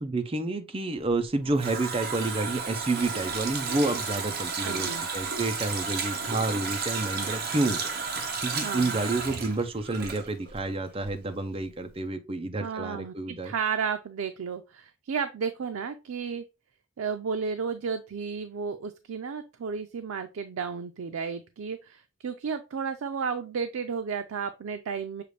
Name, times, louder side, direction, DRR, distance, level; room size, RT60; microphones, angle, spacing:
voice 1, 0.0-7.8 8.4-13.5, right 2 dB, 25° right, 0.6 m, -29 dB
Water tap faucet, 1.1-10.7 11.0-11.1, right 5 dB, 50° right, 0.9 m, -33 dB
voice 2, 4.6-5.0 8.6-9.0 12.6-16.4 17.0-25.2, right 6 dB, 90° right, 0.4 m, -33 dB
6.6 x 2.5 x 3.2 m
head